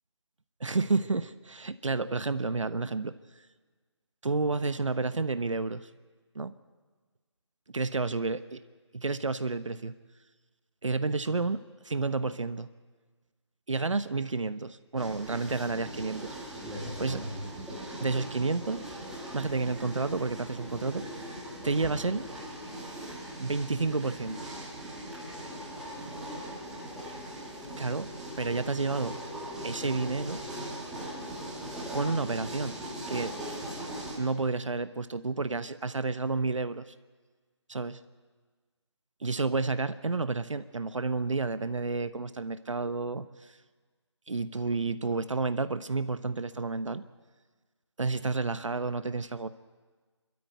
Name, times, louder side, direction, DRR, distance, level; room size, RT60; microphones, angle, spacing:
voice 1, 0.6-3.1 4.2-5.9 6.3-6.5 7.7-8.4 8.9-9.9 10.8-12.7 13.7-16.4 17.0-17.2 18.0-18.9 19.3-22.2 23.4-24.4 27.8-28.1 28.4-29.1 29.6-30.4 31.9-32.8 33.1-33.4 34.2-36.9 37.7-38.0 39.2-43.5 44.3-47.0 48.0-49.5, right 3 dB, 85° right, 12 dB, 1.0 m, -30 dB
sound 1, 15.0-34.2, right 1 dB, ahead, 2.1 m, -40 dB
26.0 x 13.0 x 9.2 m, 1.4 s
figure-of-eight pair, 165°, 16 cm